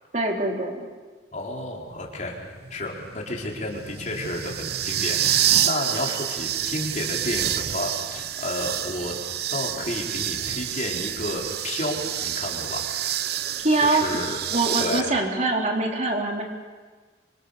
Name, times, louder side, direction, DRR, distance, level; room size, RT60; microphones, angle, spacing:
voice 1, 0.1-0.9 13.6-14.0 14.5-16.4, right 2 dB, 40° right, 0 dB, 4.0 m, -23 dB
voice 2, 1.3-2.4 2.7-9.1 9.5-12.9 13.8-14.4 14.8-15.1, left 1 dB, 40° left, -1 dB, 4.5 m, -31 dB
sound 1, 1.9-15.0, right 11 dB, 55° right, 0.8 m, -28 dB
28.0 x 26.5 x 6.8 m, 1.4 s
head